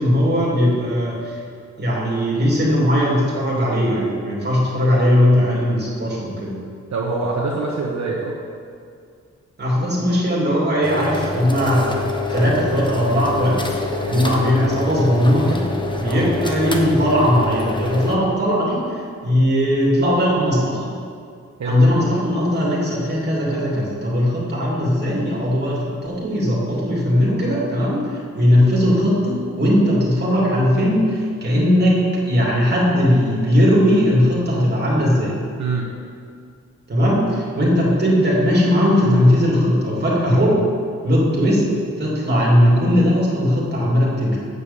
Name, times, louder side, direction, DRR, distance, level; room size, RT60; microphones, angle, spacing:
voice 1, 0.0-1.3 1.8-6.6 9.6-11.9 12.3-13.6 14.1-15.7 16.0-20.9 21.6-35.4 36.9-40.6 41.0-41.6 42.0-44.4, equal, 35° right, -5 dB, 2.7 m, -18 dB
voice 2, 6.9-8.3 14.0-14.3 16.0-16.3 21.6-21.8 35.6-35.9, right 3 dB, 70° right, -3 dB, 1.1 m, -25 dB
sound 1, 10.8-18.2, left 3 dB, 15° left, 0.8 m, -26 dB
8.1 x 6.6 x 7.0 m, 2.3 s
wide cardioid pair, 130°, 29 cm